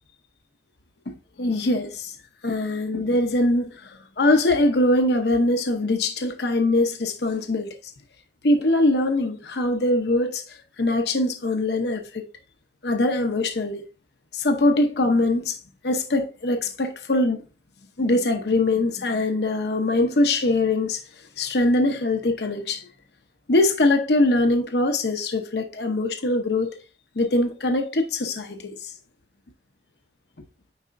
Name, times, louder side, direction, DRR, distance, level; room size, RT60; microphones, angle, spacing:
voice 1, 1.1-2.2 2.4-7.8 8.4-12.2 12.8-13.8 14.3-15.6 15.8-17.4 18.0-21.0 21.4-22.9 23.5-26.7 27.2-28.9, left 2 dB, 65° left, 0.8 m, -22 dB
9.5 x 4.3 x 2.6 m
head